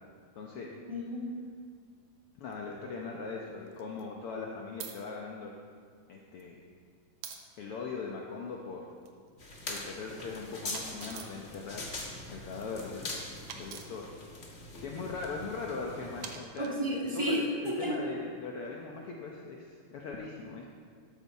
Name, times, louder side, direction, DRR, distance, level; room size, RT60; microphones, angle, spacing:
voice 1, 0.4-0.7 2.4-5.5 6.1-6.6 7.6-8.8 9.7-11.9 12.3-13.0 13.5-14.1 14.8-16.7 17.1-20.7, left 4 dB, 75° left, -1 dB, 1.3 m, -40 dB
voice 2, 0.9-1.3 16.6-17.9, equal, 45° right, -4 dB, 0.3 m, -32 dB
sound 1, 2.5-2.6 3.7-4.0 4.8-5.0 6.1-6.4 7.2-7.4 8.9-9.8 10.7-11.4 12.5-13.0 13.5-13.9 15.2-15.5 16.2-17.0, right 7 dB, 70° right, 2.0 m, -45 dB
sound 2, 9.4-16.4, left 2 dB, 55° left, 0.7 m, -42 dB
13.0 x 12.5 x 4.2 m, 2.1 s
omnidirectional pair, 3.8 m